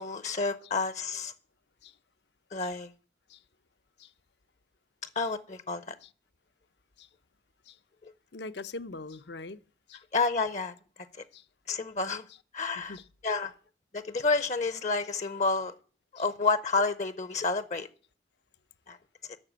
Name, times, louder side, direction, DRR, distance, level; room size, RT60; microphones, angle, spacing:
voice 1, 0.0-1.3 2.5-2.9 5.2-5.9 8.0-8.1 10.1-10.7 11.7-12.2 12.5-13.0 13.2-13.5 13.9-15.7 16.1-17.9 18.9-19.0, left 4 dB, 40° left, 0.6 m, -29 dB
voice 2, 8.3-9.6 9.9-10.0 11.3-11.4 12.8-13.0 16.2-16.3, left 3 dB, 75° left, 0.7 m, -42 dB
12.0 x 6.8 x 8.6 m
head